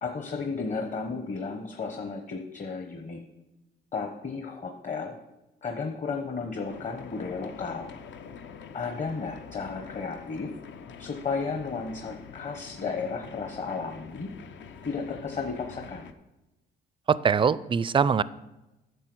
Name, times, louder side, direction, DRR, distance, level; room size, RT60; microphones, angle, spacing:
voice 1, 0.0-3.2 3.9-5.2 5.6-7.9 8.7-10.5 11.0-14.3 14.8-16.1, left 4 dB, 40° left, 4 dB, 1.1 m, -33 dB
sound 1, 6.7-16.1, left 6 dB, 65° left, 0.8 m, -45 dB
voice 2, 17.1-18.2, right 6 dB, 25° right, 18 dB, 0.4 m, -22 dB
10.0 x 6.4 x 6.2 m, 0.99 s
cardioid pair, 90°, 20 cm